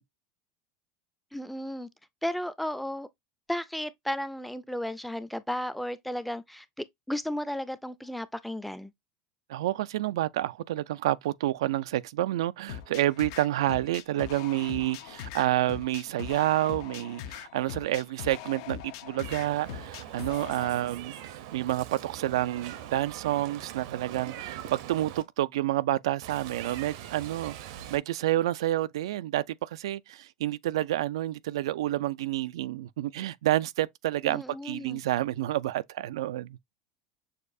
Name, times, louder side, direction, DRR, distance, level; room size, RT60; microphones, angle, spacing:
voice 1, 1.3-1.9 2.2-3.1 3.5-8.9 34.2-35.0, left 1 dB, 5° left, 0.4 m, -34 dB
voice 2, 9.5-36.6, right 14 dB, 90° right, 0.3 m, -29 dB
sound 1, 12.7-20.7, left 10 dB, 70° left, 0.6 m, -41 dB
Meow, 19.2-25.2 26.2-28.0, right 11 dB, 75° right, 0.7 m, -42 dB
6.5 x 2.4 x 2.6 m
supercardioid pair, 120°, 3 cm